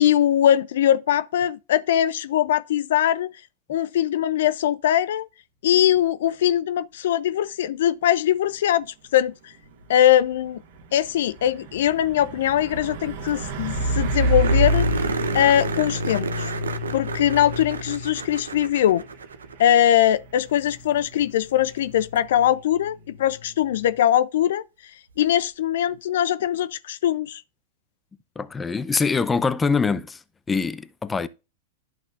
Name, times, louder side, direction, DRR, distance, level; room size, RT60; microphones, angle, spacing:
voice 1, 0.0-3.3 3.7-5.2 5.6-8.9 9.1-9.5 9.9-10.6 10.9-15.0 15.3-16.5 16.9-19.0 19.6-24.6 25.2-27.4, left 11 dB, 70° left, 0.3 m, -21 dB
Truck, 9.6-23.9, equal, 65° right, 1.6 m, -29 dB
sound 1, 13.0-13.1 13.3-13.4 13.7-13.8 14.4-19.8 22.2-22.3 25.1-25.2, right 5 dB, 90° right, 0.8 m, -31 dB
voice 2, 28.4-30.2 30.5-31.3, left 5 dB, 15° left, 0.6 m, -24 dB
11.0 x 6.1 x 2.5 m
hypercardioid pair, 105°, 0 cm